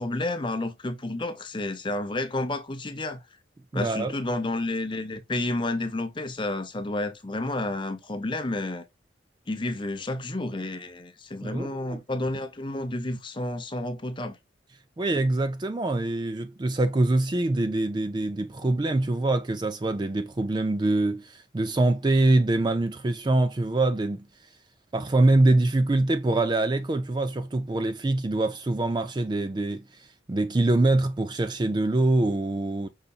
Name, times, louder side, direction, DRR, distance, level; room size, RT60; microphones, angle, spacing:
voice 1, 0.0-3.2 3.7-8.8 9.5-14.4, left 2 dB, 25° left, 0.7 m, -30 dB
voice 2, 3.7-4.2 11.4-12.0 15.0-24.3 24.9-32.9, right 2 dB, 25° right, 0.4 m, -24 dB
5.6 x 3.9 x 2.4 m
head